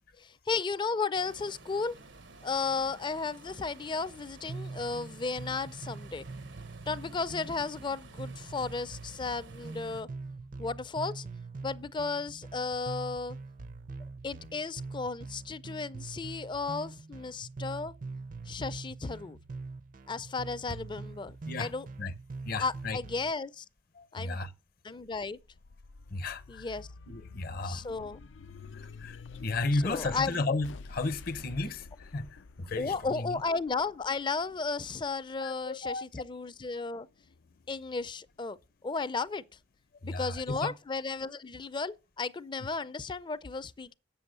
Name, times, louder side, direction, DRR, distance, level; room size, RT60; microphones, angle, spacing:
voice 1, 0.2-1.9 2.4-6.3 6.9-10.1 10.6-11.3 11.6-13.4 14.2-17.9 18.5-19.4 20.1-21.9 22.6-23.7 24.1-24.4 24.8-25.4 26.5-26.9 27.6-28.2 29.8-30.3 32.8-37.1 37.7-38.6 38.8-39.4 40.0-43.9, left 4 dB, 25° left, 0.4 m, -34 dB
sound 1, 1.1-10.0, right 2 dB, 90° right, 1.1 m, -51 dB
sound 2, 4.5-23.3, right 3 dB, 45° right, 0.5 m, -43 dB
voice 2, 22.4-23.0 23.9-24.5 26.1-26.7 27.1-27.8 28.7-33.4 35.4-36.1 40.0-40.7, left 3 dB, 55° left, 0.7 m, -34 dB
sound 3, 25.0-35.8 36.4-37.5, left 4 dB, 85° left, 0.4 m, -49 dB
7.9 x 7.0 x 6.6 m
head